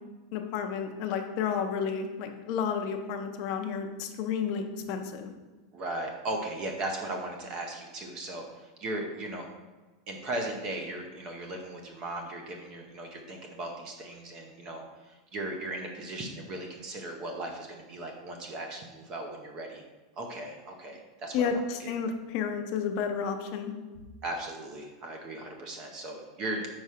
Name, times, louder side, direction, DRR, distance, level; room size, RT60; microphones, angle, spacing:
voice 1, 0.3-5.3 21.3-23.7, left 6 dB, 35° left, 5 dB, 0.6 m, -31 dB
voice 2, 5.7-9.5 10.1-19.8 20.2-21.4 21.8-21.9 24.2-26.7, right 2 dB, 25° right, 3 dB, 0.6 m, -37 dB
4.8 x 4.6 x 5.6 m, 1.2 s
supercardioid pair, 180°, 3 cm